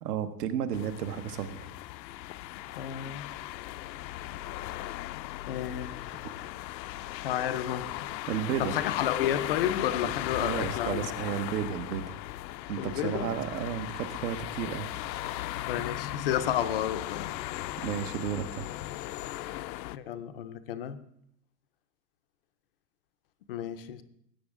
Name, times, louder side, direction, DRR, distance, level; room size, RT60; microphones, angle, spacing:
voice 1, 0.0-1.7 8.3-8.7 10.0-10.1 10.4-12.2 12.7-15.5 17.8-18.7, right 9 dB, 65° right, 1.2 m, -33 dB
sound 1, 0.7-20.0, left 16 dB, 85° left, 0.6 m, -37 dB
voice 2, 2.7-3.2 5.5-6.6 6.9-8.3 8.6-11.1 12.8-13.3 15.7-17.3 19.3-19.6 19.9-21.0 23.5-24.0, left 10 dB, 40° left, 0.4 m, -32 dB
16.0 x 8.5 x 3.6 m
supercardioid pair, 165°, 50 cm